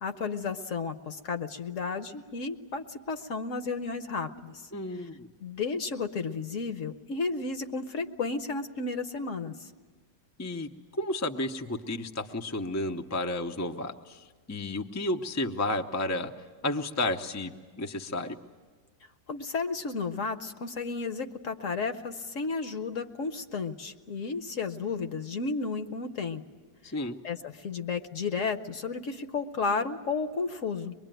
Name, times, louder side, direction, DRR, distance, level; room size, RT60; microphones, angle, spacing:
voice 1, 0.0-4.6 5.4-9.7 19.3-26.4 27.2-31.1, left 4 dB, 55° left, 8 dB, 1.1 m, -33 dB
voice 2, 4.7-5.3 10.4-16.3 16.6-17.5 17.8-18.4 26.8-27.2, left 2 dB, 25° left, 4 dB, 0.3 m, -32 dB
23.5 x 22.0 x 9.1 m, 1.4 s
omnidirectional pair, 1.9 m